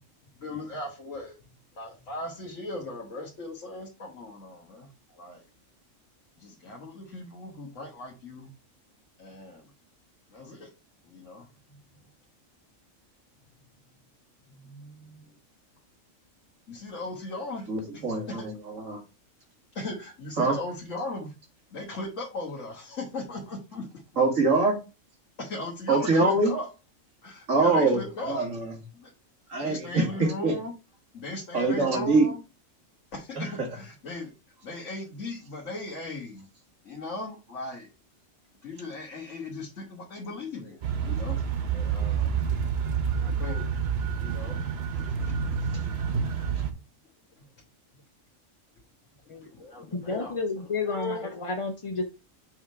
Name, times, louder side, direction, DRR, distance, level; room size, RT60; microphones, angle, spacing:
voice 1, 0.4-1.4 1.7-5.4 6.4-8.5 9.2-9.7 10.3-10.7 11.1-11.5 14.5-15.3 16.7-17.7 17.9-18.4 19.7-21.3 21.7-23.9 25.4-26.7 27.2-28.4 28.9-29.1 29.6-30.7 31.1-32.4 33.1-34.3 34.6-36.4 36.8-37.9 38.6-41.4 41.7-42.3 43.2-43.7 44.2-45.8 49.3-50.4, left 2 dB, 65° left, 1.7 m, -38 dB
voice 2, 17.7-19.0 20.4-20.6 24.2-24.8 25.9-26.5 27.5-28.7 29.5-30.5 31.5-32.3 33.4-33.7, right 3 dB, 75° right, 2.1 m, -24 dB
sound 1, 40.8-46.7, right 7 dB, 55° right, 1.0 m, -28 dB
voice 3, 49.9-52.0, left 3 dB, 35° left, 0.5 m, -30 dB
6.2 x 3.7 x 4.5 m
omnidirectional pair, 1.4 m